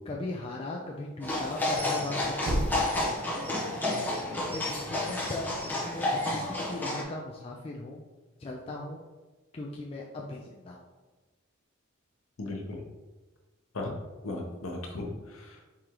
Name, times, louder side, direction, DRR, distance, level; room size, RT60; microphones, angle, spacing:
voice 1, 0.1-3.1 4.5-8.0 8.4-9.0 9.5-10.9, left 2 dB, 30° left, -2 dB, 0.4 m, -38 dB
sound 1, 1.2-7.0, left 1 dB, 10° left, 0.9 m, -31 dB
Thump thud, 1.5-5.6, right 1 dB, 55° right, 0.6 m, -38 dB
voice 2, 12.4-12.8 13.7-13.9 14.2-15.8, left 2 dB, 80° left, 1 dB, 0.8 m, -37 dB
4.8 x 3.7 x 2.9 m, 1.2 s
head